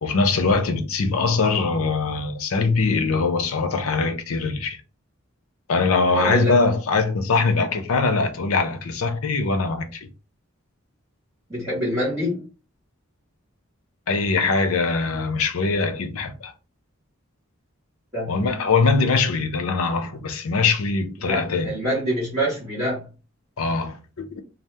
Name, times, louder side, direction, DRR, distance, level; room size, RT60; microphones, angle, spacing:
voice 1, 0.0-4.8 5.7-10.1 14.1-16.5 18.3-21.7 23.6-24.4, left 4 dB, 80° left, 0.5 m, -22 dB
voice 2, 6.1-6.5 11.5-12.4 18.1-18.5 21.2-23.0, equal, 10° right, 1.4 m, -25 dB
2.7 x 2.1 x 3.4 m
head